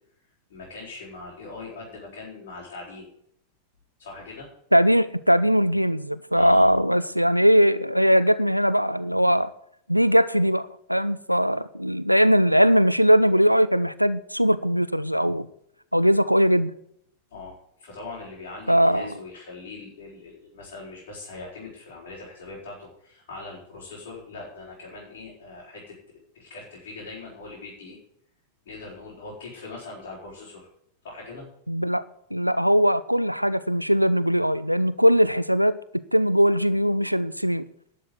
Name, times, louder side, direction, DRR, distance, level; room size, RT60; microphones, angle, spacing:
voice 1, 0.5-3.1 4.0-4.5 6.3-6.8 17.3-25.9 26.3-28.0 28.6-30.7 31.0-31.5, left 3 dB, 55° left, 5.0 m, -41 dB
voice 2, 4.7-9.5 9.9-15.5 15.9-16.7 18.7-19.1 31.7-32.0 32.3-37.7, equal, 90° right, 0.4 m, -20 dB
12.0 x 6.3 x 9.5 m
figure-of-eight pair, 90°, 0 cm